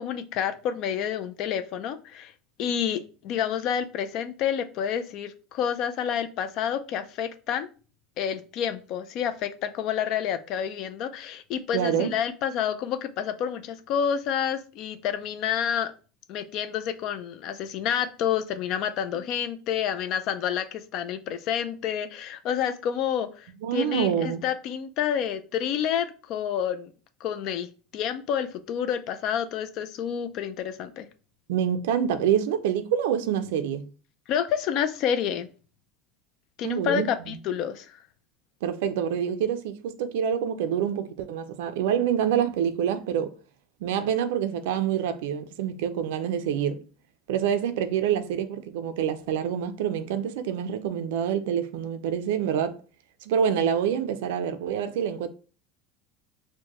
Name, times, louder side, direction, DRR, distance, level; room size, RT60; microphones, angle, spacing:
voice 1, 0.0-2.3 2.6-7.7 8.2-15.9 16.3-26.9 27.2-31.1 34.3-35.5 36.6-38.0, left 8 dB, 45° left, 0.4 m, -29 dB
voice 2, 11.7-12.1 23.6-24.4 31.5-33.9 36.6-37.4 38.6-43.3 43.8-46.8 47.3-52.8 53.3-55.3, right 8 dB, 85° right, 0.4 m, -26 dB
4.5 x 2.1 x 2.9 m
supercardioid pair, 150°, 0 cm